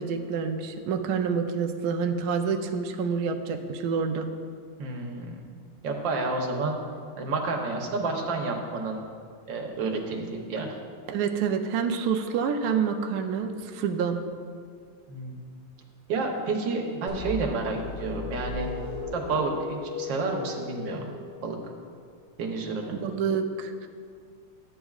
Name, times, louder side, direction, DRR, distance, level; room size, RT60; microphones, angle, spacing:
voice 1, 0.0-4.3 11.1-14.2 23.0-23.9, right 6 dB, 85° right, 4 dB, 0.8 m, -28 dB
voice 2, 4.8-5.4 5.8-6.8 7.2-9.0 9.5-10.7 15.1-15.3 16.1-18.7 19.1-19.5 19.8-21.1 21.4-21.6 22.4-23.0, right 3 dB, 65° right, 1 dB, 1.6 m, -30 dB
sound 1, 17.1-21.8, left 2 dB, 60° left, 3.3 m, -36 dB
12.5 x 8.9 x 2.4 m, 2.2 s
omnidirectional pair, 2.4 m